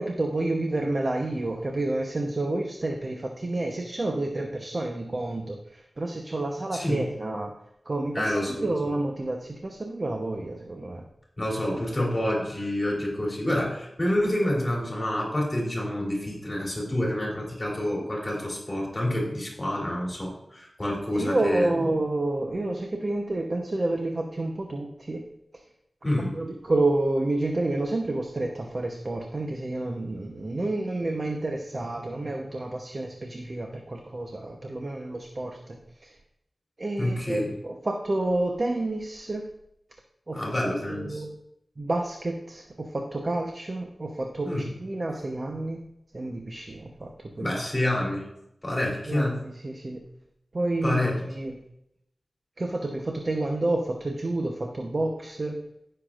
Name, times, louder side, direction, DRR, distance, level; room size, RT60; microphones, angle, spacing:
voice 1, 0.0-7.5 7.9-8.3 8.6-11.0 21.1-25.2 26.3-36.1 36.8-39.5 40.3-40.4 40.9-41.3 41.8-45.8 46.1-47.1 47.4-47.5 49.1-50.0 50.5-51.0 51.3-51.6 52.6-55.6, right 2 dB, 45° right, 2 dB, 0.9 m, -29 dB
voice 2, 6.7-7.1 8.1-8.7 11.4-21.9 26.0-26.3 37.0-37.5 40.3-41.2 44.4-44.7 47.4-48.2 48.6-49.4 50.8-51.2, left 1 dB, 30° left, -2 dB, 3.3 m, -28 dB
16.0 x 6.8 x 2.5 m, 0.80 s
wide cardioid pair, 70°, 0 cm